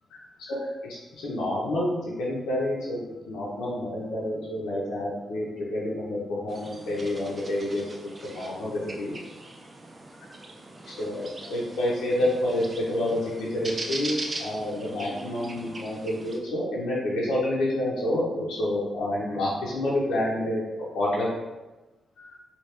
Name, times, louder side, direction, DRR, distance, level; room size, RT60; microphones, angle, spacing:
voice 1, 0.1-1.9 2.2-7.8 8.2-9.1 10.9-20.6 20.9-21.3 22.2-22.3, left 1 dB, 90° left, -6 dB, 0.7 m, -28 dB
sound 1, 6.5-16.4, right 2 dB, 35° right, 0.4 m, -40 dB
2.9 x 2.8 x 3.2 m, 1.1 s
cardioid pair, 85°, 0 cm